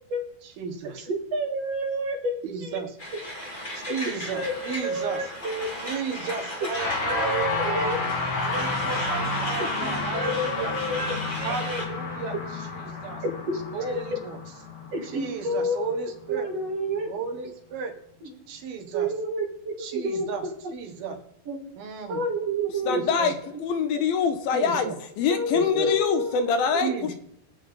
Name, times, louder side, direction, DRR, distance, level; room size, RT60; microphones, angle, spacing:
voice 1, 0.4-1.1 2.4-3.0 3.7-5.2 5.8-7.8 8.4-10.8 11.4-12.4 12.7-13.2 13.7-14.4 15.0-16.5 17.1-17.9 18.5-19.1 19.8-20.4 20.7-21.2 21.8-22.2 22.8-23.3 24.5-25.0 25.5-25.9 26.8-27.1, right 5 dB, 75° right, 3.4 m, -34 dB
voice 2, 1.1-2.8 4.1-5.7 7.1-8.0 9.6-11.8 13.2-14.0 14.9-17.1 18.2-18.3 18.9-20.5 21.5-21.7 22.1-23.2 23.5-23.6 24.0-24.1 25.3-26.7, equal, 50° right, 2.6 m, -30 dB
Truck, 3.0-11.9, left 1 dB, 15° left, 1.9 m, -36 dB
sound 1, 6.8-16.2, left 3 dB, 40° left, 2.1 m, -30 dB
voice 3, 22.9-24.9 25.2-27.1, left 6 dB, 75° left, 2.9 m, -24 dB
24.5 x 8.5 x 3.9 m
omnidirectional pair, 4.4 m